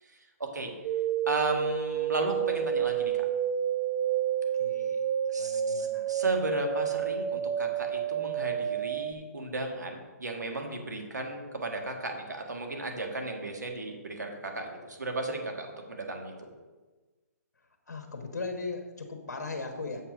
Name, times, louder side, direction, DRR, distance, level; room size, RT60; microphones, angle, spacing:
voice 1, 0.1-0.7 1.3-3.3 5.3-16.3, right 2 dB, 90° right, 2 dB, 1.8 m, -35 dB
sound 1, 0.8-9.1, right 9 dB, 30° right, 0.4 m, -30 dB
voice 2, 4.6-5.0 5.4-6.1 17.9-20.0, left 3 dB, 80° left, 4 dB, 1.2 m, -38 dB
7.2 x 5.7 x 6.2 m, 1.3 s
hypercardioid pair, 135°, 9 cm